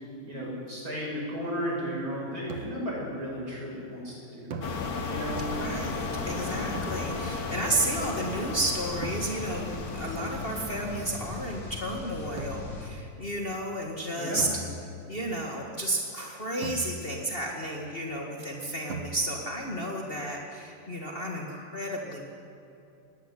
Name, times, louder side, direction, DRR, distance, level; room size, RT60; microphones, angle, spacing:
voice 1, 0.2-4.7 5.0-5.4 14.1-14.4, equal, 45° right, -4 dB, 8.3 m, -34 dB
sound 1, 2.5-3.0 4.5-5.4 6.7-7.5 9.0-9.7 12.4-12.9 14.4-15.2 16.6-17.4 18.9-19.6, right 2 dB, 70° right, 2.3 m, -40 dB
sound 2, 4.6-12.9, left 3 dB, 65° left, 3.4 m, -39 dB
sound 3, 4.6-11.6, left 4 dB, 50° left, 1.9 m, -36 dB
voice 2, 5.5-14.5 15.1-22.3, right 1 dB, 30° left, 0 dB, 2.2 m, -32 dB
20.0 x 18.0 x 10.0 m, 2.8 s
omnidirectional pair, 2.2 m